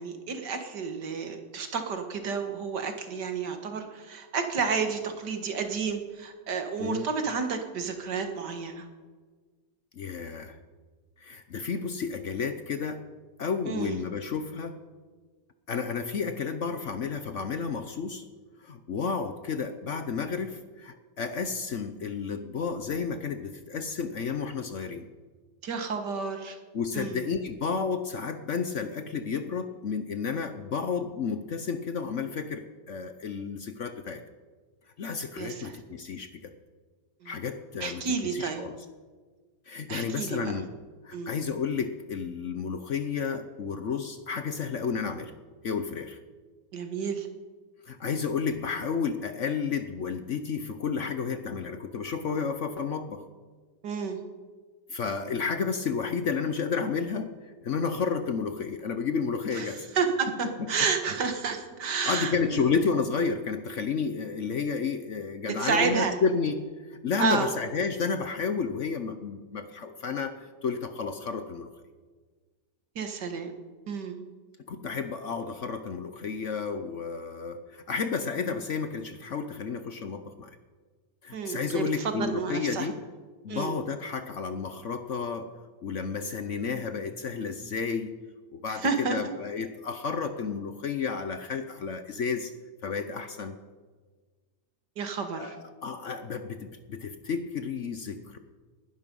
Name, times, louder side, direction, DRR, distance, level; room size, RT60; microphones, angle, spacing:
voice 1, 0.0-8.9 13.7-14.0 25.6-26.6 26.9-27.3 35.4-35.8 37.2-37.4 37.8-38.6 39.9-40.5 41.1-41.3 46.7-47.3 53.8-54.2 59.5-62.7 65.5-66.2 67.2-67.5 73.0-73.5 73.9-74.2 81.3-82.9 83.5-83.8 88.7-89.2 95.0-95.6, right 5 dB, 75° right, 6 dB, 2.2 m, -31 dB
voice 2, 10.0-10.6 11.2-13.0 13.4-14.8 15.7-18.2 18.6-25.1 26.7-34.2 35.0-36.5 37.2-38.0 38.3-38.8 39.7-40.7 41.0-45.3 45.6-46.2 47.9-53.2 54.9-57.3 57.6-59.9 62.1-71.7 74.7-80.6 81.2-83.0 83.4-85.5 85.8-88.2 88.5-92.5 92.8-93.6 95.4-98.4, left 5 dB, 55° left, 9 dB, 1.0 m, -31 dB
19.5 x 11.0 x 5.4 m, 1.4 s
omnidirectional pair, 1.9 m